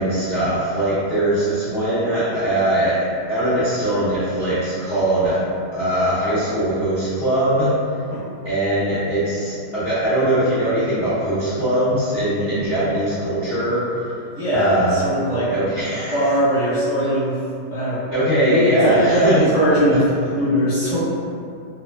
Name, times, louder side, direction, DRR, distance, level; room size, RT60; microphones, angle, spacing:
voice 1, 0.0-5.4 5.7-7.8 8.4-13.8 14.5-15.0 15.5-16.1 18.1-19.4, right 1 dB, 55° left, -14 dB, 0.7 m, -21 dB
voice 2, 14.3-15.5 16.1-17.4 17.7-21.0, equal, 15° right, -16 dB, 0.8 m, -20 dB
2.9 x 2.0 x 2.2 m, 2.4 s
omnidirectional pair, 1.9 m